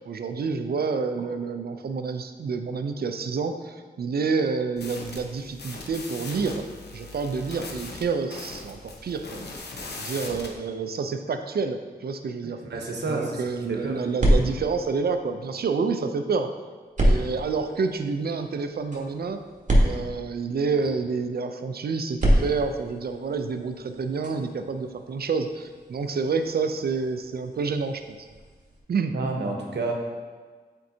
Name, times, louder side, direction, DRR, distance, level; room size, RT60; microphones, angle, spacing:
voice 1, 0.0-6.7 6.9-9.4 10.0-12.6 13.1-16.5 17.0-19.4 19.8-28.3 28.9-29.1, right 4 dB, 65° right, 8 dB, 0.5 m, -28 dB
sound 1, 4.8-10.5, left 3 dB, 75° left, 0.8 m, -39 dB
voice 2, 12.4-13.4 13.7-14.0 19.7-19.9 29.1-29.9, right 3 dB, 85° right, 1 dB, 0.9 m, -30 dB
sound 2, 13.5-15.8 17.0-20.9 22.1-28.8, equal, 45° right, 1.3 m, -28 dB
7.7 x 4.5 x 2.8 m, 1.5 s
wide cardioid pair, 75°, 17 cm